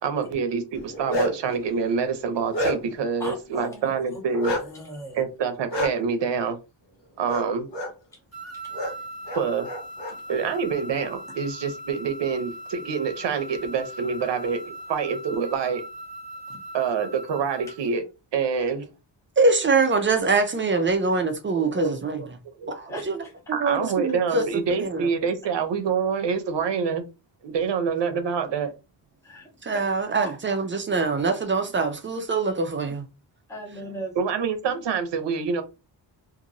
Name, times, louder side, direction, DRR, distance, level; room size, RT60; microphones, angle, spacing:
voice 1, 0.0-4.5 5.1-6.6 7.2-7.7 9.3-9.7 10.3-15.8 16.7-18.0 18.3-18.9 21.7-21.9 22.2-22.3 22.6-22.8 23.5-27.0 27.4-28.7 34.2-35.6, right 6 dB, 70° right, 0.7 m, -26 dB
Bark, 0.8-1.5 2.0-3.1 4.4-4.6 5.7-5.9 7.3-7.5 7.7-7.9 8.7-8.9 9.3-10.1, equal, 65° left, 1.1 m, -28 dB
voice 2, 3.2-5.2 22.9-23.3 29.2-29.5 29.7-29.8 30.2-30.3 33.5-34.2, right 1 dB, 5° left, 0.8 m, -38 dB
sound 1, 8.3-17.9, right 1 dB, 35° left, 1.4 m, -40 dB
voice 3, 19.4-22.2 22.7-23.2 23.6-25.1 29.6-33.0, right 3 dB, 25° right, 0.4 m, -24 dB
2.9 x 2.6 x 2.6 m
wide cardioid pair, 165°, 46 cm